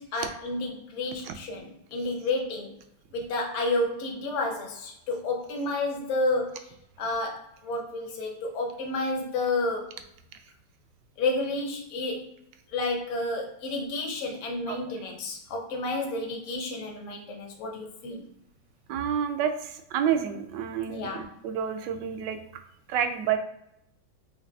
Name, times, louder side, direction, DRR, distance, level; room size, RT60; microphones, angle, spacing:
voice 1, 0.0-2.8 3.1-6.7 7.0-9.9 11.2-12.3 12.7-18.2 20.9-21.2, left 2 dB, 55° left, 0.9 m, -30 dB
voice 2, 18.9-22.4 22.9-23.4, right 8 dB, 75° right, 1.1 m, -29 dB
5.2 x 2.7 x 2.7 m
omnidirectional pair, 2.0 m